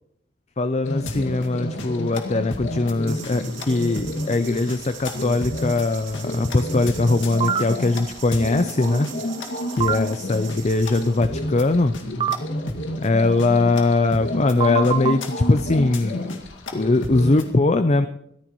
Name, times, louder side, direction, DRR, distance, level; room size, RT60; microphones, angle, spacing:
voice 1, 0.6-9.1 9.8-12.0 13.0-16.2 16.7-18.1, left 2 dB, 35° left, 10 dB, 0.5 m, -21 dB
sound 1, 0.8-17.5, left 1 dB, 65° left, 2.1 m, -30 dB
sound 2, 3.1-11.2, right 9 dB, 75° right, 2.5 m, -42 dB
sound 3, 7.4-7.6 9.8-10.0 12.2-12.4 14.6-15.1, right 9 dB, 25° right, 0.4 m, -22 dB
23.0 x 15.0 x 3.1 m, 0.79 s
head